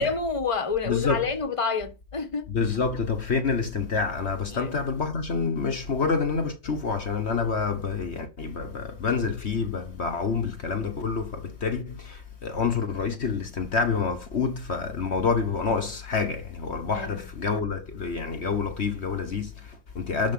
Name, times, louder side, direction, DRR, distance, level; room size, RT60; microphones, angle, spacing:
voice 1, 0.0-2.5 4.5-4.7 16.9-17.3, left 4 dB, 25° left, 1.5 m, -28 dB
voice 2, 0.8-1.2 2.5-20.3, left 5 dB, 55° left, 1.5 m, -27 dB
12.0 x 4.9 x 7.7 m
omnidirectional pair, 1.4 m